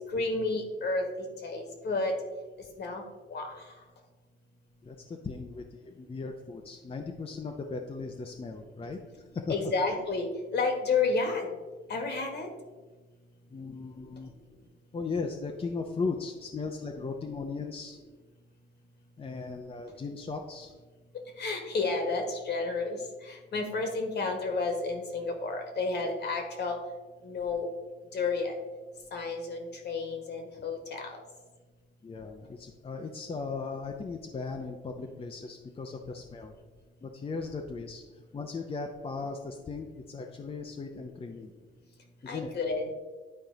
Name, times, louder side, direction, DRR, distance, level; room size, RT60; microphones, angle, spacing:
voice 1, 0.1-2.1 2.8-3.0 3.3-3.5 9.5-11.5 11.9-12.5 21.4-23.0 23.3-26.8 27.2-27.7 28.1-28.5 29.1-31.1 42.3-43.0, left 3 dB, 60° left, 4 dB, 1.7 m, -31 dB
voice 2, 4.8-9.0 9.3-9.7 13.5-14.3 14.9-18.0 19.2-20.7 32.0-36.5 37.0-41.5 42.2-42.5, left 4 dB, 30° left, 3 dB, 0.7 m, -37 dB
10.5 x 4.4 x 3.9 m, 1.3 s
cardioid pair, 90°, 20 cm